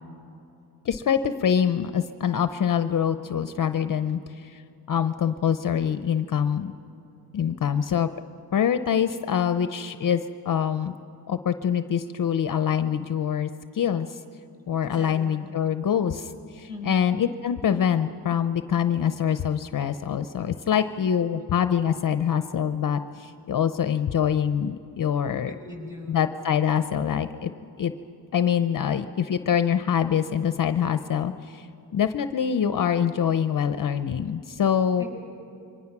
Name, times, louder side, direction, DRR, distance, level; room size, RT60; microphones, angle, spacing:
voice 1, 0.8-4.6 4.9-6.7 7.3-8.1 8.5-10.9 11.3-13.5 13.7-14.2 14.7-25.5 26.1-27.5 27.8-27.9 28.3-31.7 31.9-35.0, left 8 dB, 55° left, 10 dB, 0.7 m, -25 dB
voice 2, 14.8-15.4 16.7-17.0 25.5-26.2 35.0-35.1, left 2 dB, 10° right, 0 dB, 7.0 m, -39 dB
27.5 x 23.5 x 6.0 m, 2.8 s
wide cardioid pair, 115°, 40 cm